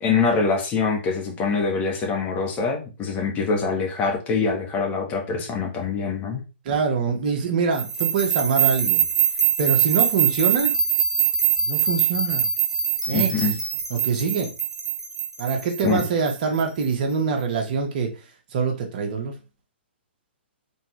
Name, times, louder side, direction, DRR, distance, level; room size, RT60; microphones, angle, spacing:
voice 1, 0.0-6.4 13.1-13.6 15.8-16.0, left 4 dB, 25° left, 1 dB, 1.3 m, -24 dB
voice 2, 6.6-9.1 9.6-10.7 11.6-12.5 13.1-13.5 13.9-14.5 15.4-18.1 18.5-19.3, right 5 dB, 45° right, 2 dB, 1.3 m, -24 dB
sound 1, 7.8-16.8, right 8 dB, 5° right, 0.8 m, -23 dB
4.3 x 3.6 x 3.2 m, 0.31 s
figure-of-eight pair, 125°, 6 cm